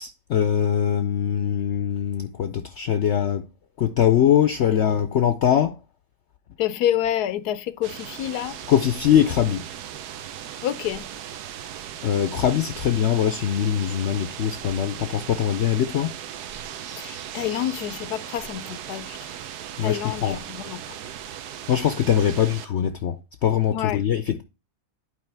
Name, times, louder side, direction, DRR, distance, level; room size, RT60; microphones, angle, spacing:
voice 1, 0.0-3.5 3.8-5.8 8.7-9.6 12.0-16.1 19.8-20.4 21.7-24.4, left 9 dB, 60° left, 0.8 m, -22 dB
voice 2, 6.6-8.6 10.6-11.1 16.9-19.3 19.8-21.0 23.7-24.1, left 11 dB, 85° left, 1.2 m, -28 dB
sound 1, 7.8-22.7, right 10 dB, 85° right, 1.3 m, -37 dB
11.0 x 4.9 x 3.3 m
omnidirectional pair, 1.6 m